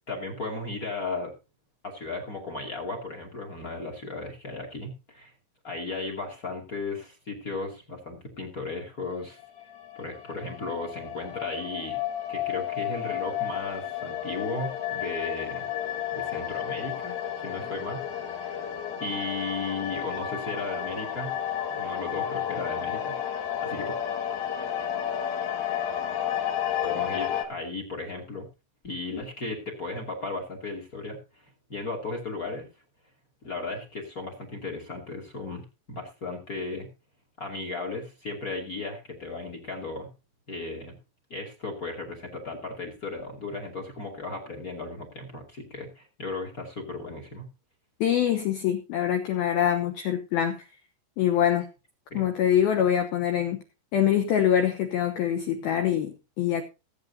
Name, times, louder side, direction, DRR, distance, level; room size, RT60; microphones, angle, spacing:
voice 1, 0.1-1.3 1.8-5.3 5.6-9.4 10.0-12.0 12.3-15.7 16.1-18.6 19.0-21.3 21.7-23.9 26.8-28.4 28.8-31.4 31.7-32.6 33.4-36.9 37.4-40.1 40.5-40.9 41.3-47.4 52.1-52.3, left 3 dB, 35° left, 4 dB, 1.4 m, -35 dB
sound 1, 9.4-27.4, left 10 dB, 60° left, 2.9 m, -32 dB
voice 2, 48.0-50.6 51.2-51.7 52.1-53.6 53.9-56.6, left 10 dB, 80° left, 6 dB, 2.2 m, -24 dB
21.0 x 8.8 x 2.8 m, 0.30 s
omnidirectional pair, 5.8 m